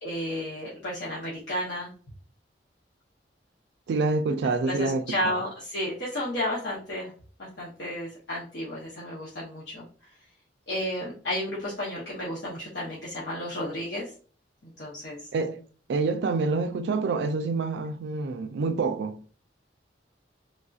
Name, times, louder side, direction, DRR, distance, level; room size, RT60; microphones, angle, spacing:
voice 1, 0.0-1.9 4.6-7.1 7.4-9.8 10.7-14.1 14.6-15.3, left 1 dB, 65° left, 0.8 m, -32 dB
voice 2, 3.9-5.4 15.3-15.6 15.9-19.2, right 3 dB, 65° right, 0.3 m, -27 dB
3.4 x 2.6 x 2.3 m
head